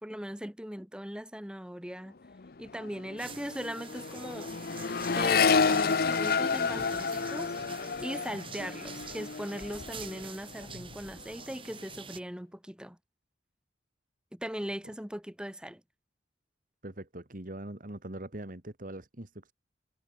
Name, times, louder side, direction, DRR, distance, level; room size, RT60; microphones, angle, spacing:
voice 1, 0.0-2.2 2.6-4.5 5.1-13.0 14.3-15.8, equal, 5° right, 1.1 m, -39 dB
Accelerating revving vroom, 2.2-2.5 2.7-10.3 10.6-11.2, left 5 dB, 55° left, 0.7 m, -30 dB
sound 1, 3.2-12.2, right 5 dB, 30° right, 7.6 m, -47 dB
voice 2, 16.8-19.5, right 1 dB, 45° right, 2.0 m, -42 dB
head